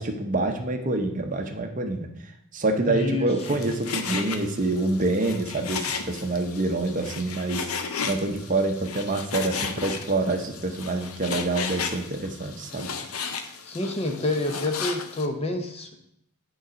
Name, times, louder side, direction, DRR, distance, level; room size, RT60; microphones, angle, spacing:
voice 1, 0.0-7.7 8.0-12.9, right 2 dB, 35° right, 5 dB, 0.7 m, -27 dB
voice 2, 2.9-3.6 13.6-15.9, left 2 dB, 25° left, 5 dB, 0.7 m, -28 dB
Frying (food), 3.4-15.3, left 5 dB, 80° left, 0.7 m, -34 dB
9.2 x 3.9 x 5.1 m, 0.76 s
head